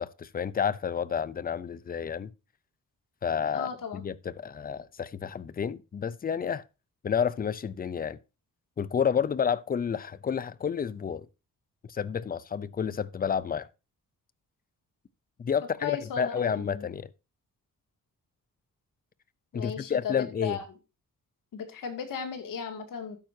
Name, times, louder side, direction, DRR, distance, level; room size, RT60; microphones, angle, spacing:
voice 1, 0.0-2.3 3.2-6.6 7.0-8.2 8.8-11.3 11.9-13.7 15.4-17.1 19.5-20.6, left 7 dB, 30° left, 0.5 m, -30 dB
voice 2, 3.5-4.0 15.8-16.9 19.5-20.6 21.5-23.2, left 7 dB, 80° left, 2.4 m, -36 dB
12.5 x 9.0 x 2.7 m
wide cardioid pair, 155°, 33 cm